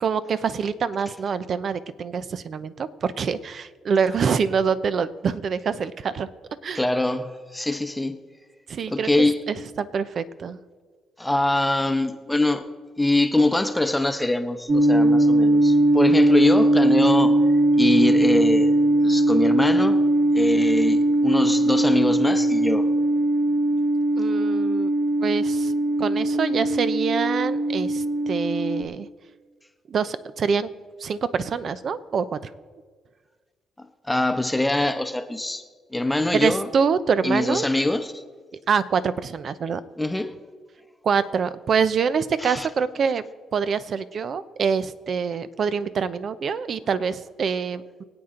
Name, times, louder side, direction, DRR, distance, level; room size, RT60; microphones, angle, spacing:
voice 1, 0.0-6.3 6.6-6.8 8.7-9.1 9.5-10.6 24.2-24.9 25.2-25.7 26.0-29.1 29.9-30.7 31.0-32.5 36.3-37.7 38.7-39.8 41.0-43.2 43.5-48.0, right 6 dB, 55° right, 14 dB, 0.7 m, -25 dB
voice 2, 6.7-8.2 8.9-9.4 11.2-12.7 13.0-17.4 17.8-18.7 19.0-20.0 20.3-22.9 34.1-35.6 35.9-36.7 37.2-38.2 40.0-40.3 42.4-42.7, left 2 dB, 10° left, 8 dB, 0.9 m, -23 dB
sound 1, 14.7-28.8, right 1 dB, 25° right, 1.1 m, -20 dB
24.0 x 8.8 x 3.8 m, 1.5 s
cardioid pair, 90°, 0 cm